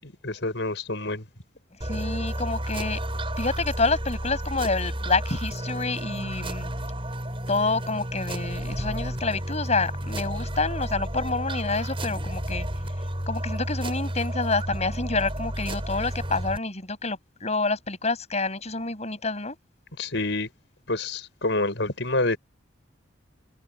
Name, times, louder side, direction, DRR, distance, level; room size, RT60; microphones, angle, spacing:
voice 1, 0.0-1.2 20.0-20.5 20.9-22.4, left 2 dB, 70° left, 6.2 m, -27 dB
sound 1, 1.8-16.6, right 1 dB, 30° right, 6.6 m, -31 dB
voice 2, 1.9-3.0 3.4-6.7 7.5-12.7 13.3-19.6, left 3 dB, 35° left, 7.4 m, -28 dB
head